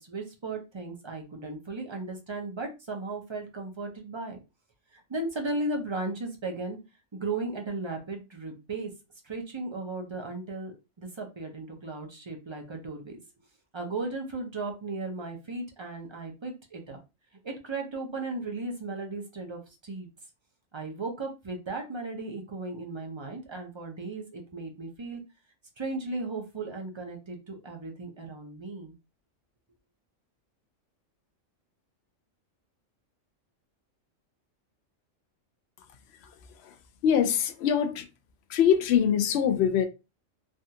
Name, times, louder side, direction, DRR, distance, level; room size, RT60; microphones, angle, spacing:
voice 1, 0.0-4.4 4.9-6.8 7.1-8.9 9.2-13.2 13.7-17.0 17.4-20.1 20.7-25.2 25.8-28.9, right 3 dB, 35° right, 0.4 m, -36 dB
voice 2, 37.0-38.0 38.5-39.9, left 8 dB, 65° left, 0.7 m, -23 dB
3.4 x 2.3 x 2.7 m
omnidirectional pair, 1.4 m